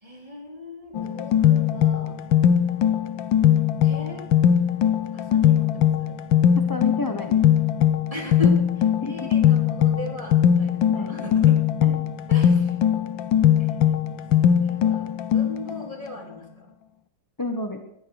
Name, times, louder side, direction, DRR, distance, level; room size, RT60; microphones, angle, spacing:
voice 1, 0.0-2.2 3.8-4.3 5.1-6.2 8.1-11.9 12.3-12.7 13.6-14.0 14.4-16.7, left 2 dB, 20° right, 0 dB, 3.7 m, -38 dB
sound 1, 1.0-15.8, left 9 dB, 85° left, 1.6 m, -20 dB
voice 2, 6.7-7.4 9.0-9.1 10.9-11.3 11.8-12.0 17.4-17.8, left 2 dB, 15° left, 4 dB, 1.0 m, -30 dB
20.5 x 14.0 x 4.8 m, 0.83 s
omnidirectional pair, 2.0 m